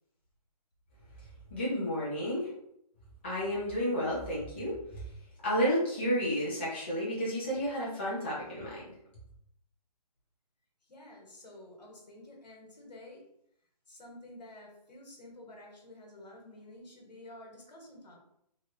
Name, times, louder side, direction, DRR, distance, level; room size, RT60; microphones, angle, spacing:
voice 1, 1.5-2.5 3.2-5.0 5.4-8.9, equal, 15° left, -8 dB, 0.5 m, -31 dB
voice 2, 10.9-13.2 13.9-18.2, left 1 dB, 85° left, 0 dB, 1.3 m, -50 dB
2.9 x 2.4 x 2.9 m, 0.75 s
hypercardioid pair, 175°, 21 cm